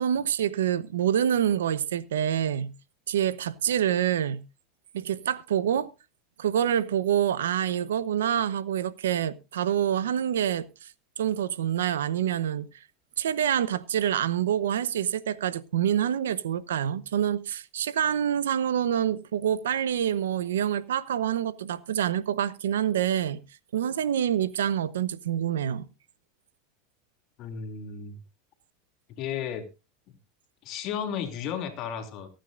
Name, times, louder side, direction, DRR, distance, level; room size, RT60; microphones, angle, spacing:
voice 1, 0.0-2.7 3.1-4.4 4.9-5.9 6.4-10.9 11.2-12.7 13.2-23.4 23.7-25.8, right 10 dB, 85° right, 0.9 m, -26 dB
voice 2, 27.4-28.2 29.2-29.7 30.1-30.2 30.6-32.3, left 8 dB, 50° left, 2.8 m, -34 dB
23.5 x 9.0 x 2.5 m
hypercardioid pair, 110°, 0 cm